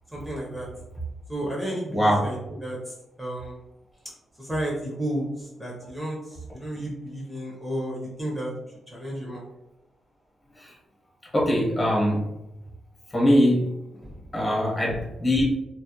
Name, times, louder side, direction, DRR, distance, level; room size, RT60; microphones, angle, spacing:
voice 1, 0.1-0.7 1.3-3.6 4.4-8.5 8.9-9.4 14.0-14.1, right 1 dB, 5° right, -4 dB, 0.5 m, -32 dB
voice 2, 1.9-2.3 11.3-12.2 13.1-13.7 14.3-15.4, equal, 30° left, -4 dB, 0.9 m, -21 dB
2.3 x 2.0 x 2.7 m, 0.92 s
cardioid pair, 100°, 0 cm